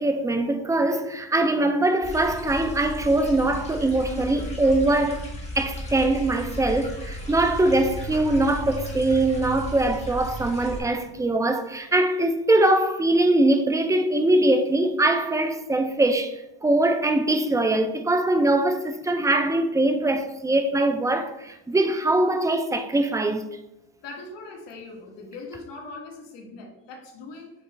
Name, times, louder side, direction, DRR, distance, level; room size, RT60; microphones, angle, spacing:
voice 1, 0.0-23.4, right 2 dB, 10° right, 0.4 m, -22 dB
sound 1, 2.0-10.8, equal, 15° left, 1.6 m, -35 dB
voice 2, 10.3-11.1 24.0-27.5, left 3 dB, 60° left, 1.8 m, -41 dB
8.1 x 3.1 x 4.4 m
cardioid pair, 120°, 47 cm